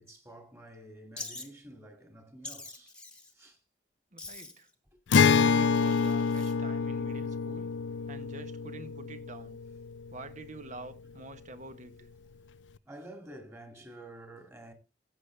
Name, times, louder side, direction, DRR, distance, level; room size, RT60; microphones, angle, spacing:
voice 1, 0.0-2.9 3.3-3.6 12.9-14.7, right 1 dB, 15° right, 2.3 m, -49 dB
Wild animals, 1.2-1.5 2.4-3.3 4.2-4.7 5.7-6.5, left 3 dB, 5° left, 1.4 m, -44 dB
voice 2, 4.1-4.7 5.2-7.7 8.1-9.6 10.1-12.1, right 2 dB, 45° right, 1.2 m, -47 dB
Acoustic guitar, 5.1-10.6, left 5 dB, 90° left, 0.5 m, -27 dB
15.0 x 8.2 x 3.3 m
head